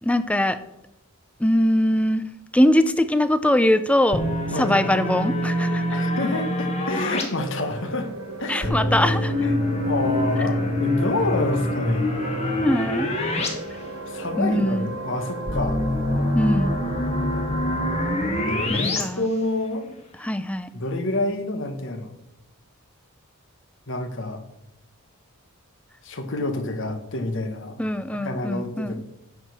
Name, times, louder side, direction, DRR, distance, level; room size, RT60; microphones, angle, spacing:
voice 1, 0.0-0.6 1.4-2.2 2.5-4.2 4.5-5.8 8.5-9.3 12.6-13.1 14.4-14.9 16.3-16.8 18.7-19.2 20.2-20.7 27.8-29.0, left 1 dB, 5° left, 12 dB, 0.4 m, -22 dB
sound 1, 4.1-7.2 8.6-13.5 13.8-13.9 15.5-19.0, left 1 dB, 30° left, 1.5 m, -25 dB
voice 2, 5.9-8.1 8.4-8.7 9.4-9.6 9.8-12.1 14.1-15.8 18.4-19.8 20.7-22.1 23.9-24.4 26.0-27.8 28.2-29.0, left 2 dB, 55° left, 6 dB, 1.2 m, -28 dB
sound 2, 7.4-18.7, right 2 dB, 65° right, 1.7 m, -35 dB
10.0 x 4.9 x 6.8 m, 0.86 s
head